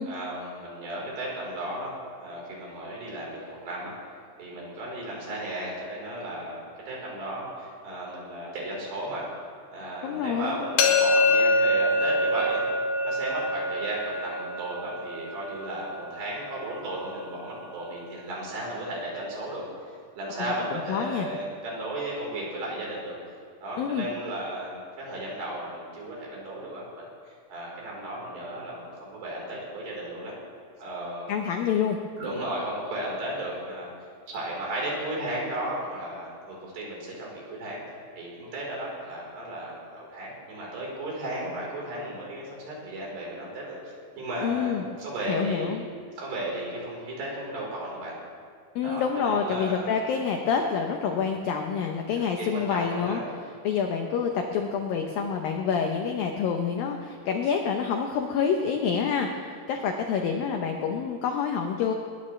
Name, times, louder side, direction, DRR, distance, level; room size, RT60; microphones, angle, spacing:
voice 1, 0.1-4.0 4.4-9.3 9.7-12.6 13.0-23.2 23.6-30.3 30.8-31.3 32.2-33.9 34.3-37.8 38.1-43.8 44.2-44.7 45.0-45.8 46.2-48.1 48.8-49.9 52.4-53.3, right 1 dB, 60° right, -4 dB, 6.2 m, -35 dB
voice 2, 10.0-10.7 20.4-21.3 23.8-24.1 31.3-32.0 44.4-44.8 45.3-45.8 48.8-53.2 53.6-61.9, left 6 dB, 85° left, 3 dB, 2.0 m, -27 dB
sound 1, 10.8-16.6, left 1 dB, 60° left, 3.3 m, -25 dB
21.0 x 20.5 x 3.3 m, 2.1 s
omnidirectional pair, 5.5 m